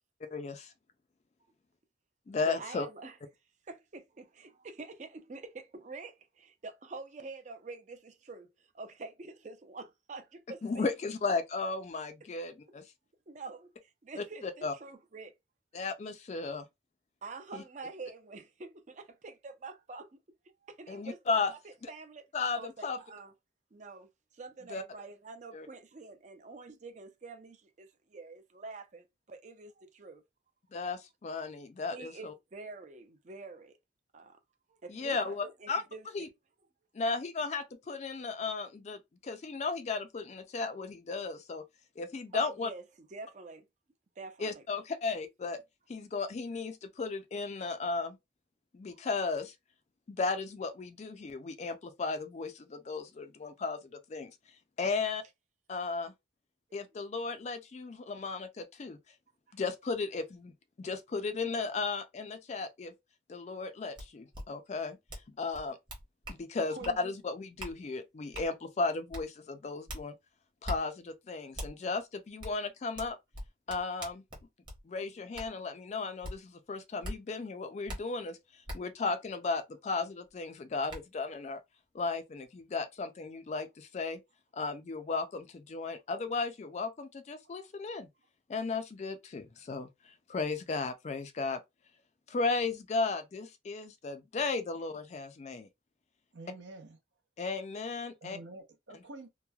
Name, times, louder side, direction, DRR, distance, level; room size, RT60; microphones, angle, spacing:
voice 1, 0.3-0.7 2.3-2.9 10.6-12.8 14.2-14.7 15.7-16.7 17.5-17.6 20.9-21.5 21.8-21.9 22.3-23.0 24.7-24.8 25.5-25.7 30.7-32.3 34.9-35.8 36.1-36.3 36.9-41.6 42.0-42.7 44.4-45.6 45.9-48.2 48.7-49.5 50.1-53.8 54.1-54.3 54.8-55.2 55.7-56.1 56.7-59.0 59.5-60.5 60.8-62.9 63.3-65.0 65.3-65.8 66.3-70.1 70.6-73.2 73.7-74.2 74.9-78.4 78.7-81.6 81.9-84.2 84.5-88.1 88.5-91.6 92.3-95.7 97.4-98.4, left 4 dB, 35° left, 0.3 m, -35 dB
voice 2, 2.4-3.2 3.7-8.5 8.7-10.9 13.3-15.3 17.2-20.2 20.7-21.2 21.5-22.3 22.6-23.3 23.7-30.2 31.9-33.8 34.1-34.4 34.7-36.3 42.3-42.8 43.1-43.7 44.2-44.6, right 3 dB, 40° right, 0.5 m, -47 dB
sound 1, 64.0-64.1 64.3-64.4 65.1-65.3 65.5-66.4 66.8-67.0 67.6-67.7 68.3-68.5 69.1-69.2 69.9-70.0 70.6-70.8 71.6-71.7 72.4-72.5 73.0-74.8 75.3-75.5 76.2-76.3 77.0-77.2 77.9-78.0 78.7-78.8 80.3-80.4 80.9-81.0, equal, 25° right, 0.9 m, -40 dB
voice 3, 66.7-67.1 87.4-87.7 94.7-94.8 96.3-97.0 98.2-99.3, right 3 dB, 75° right, 0.7 m, -47 dB
3.0 x 2.1 x 2.3 m
head